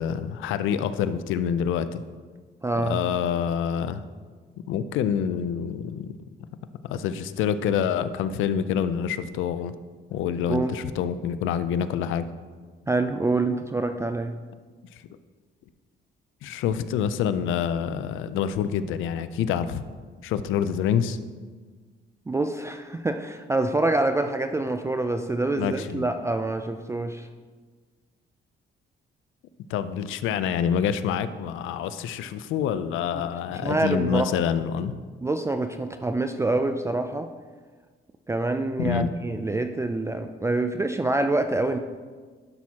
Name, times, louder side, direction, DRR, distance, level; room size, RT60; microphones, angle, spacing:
voice 1, 0.0-2.0 2.8-4.0 4.7-6.2 6.8-9.7 10.1-12.3 16.4-19.8 20.2-21.2 25.6-26.1 29.7-35.0 38.8-39.1, left 8 dB, 85° left, 13 dB, 0.5 m, -27 dB
voice 2, 2.6-3.0 10.5-10.7 12.9-14.3 22.3-27.3 33.5-34.3 35.2-37.3 38.3-41.8, right 2 dB, 15° right, 7 dB, 0.4 m, -26 dB
11.5 x 6.0 x 2.9 m, 1.5 s
cardioid pair, 90°, 20 cm